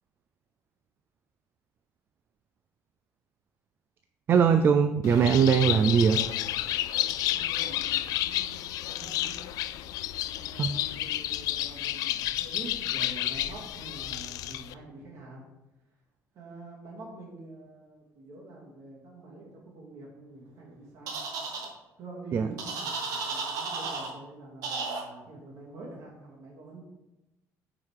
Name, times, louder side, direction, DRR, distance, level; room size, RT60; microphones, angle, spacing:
voice 1, 4.3-6.2 10.6-10.8 22.3-22.5, right 7 dB, 40° right, 8 dB, 0.3 m, -21 dB
Bird, 5.0-14.7, left 14 dB, 75° left, 0.3 m, -31 dB
voice 2, 7.3-9.4 10.3-15.5 16.3-21.2 22.0-26.8, right 2 dB, 55° right, -3 dB, 2.5 m, -46 dB
sound 1, 21.1-21.7 22.6-24.1 24.6-25.0, right 4 dB, 75° right, 1.5 m, -33 dB
9.2 x 4.8 x 3.7 m, 0.99 s
cardioid pair, 160°, 6 cm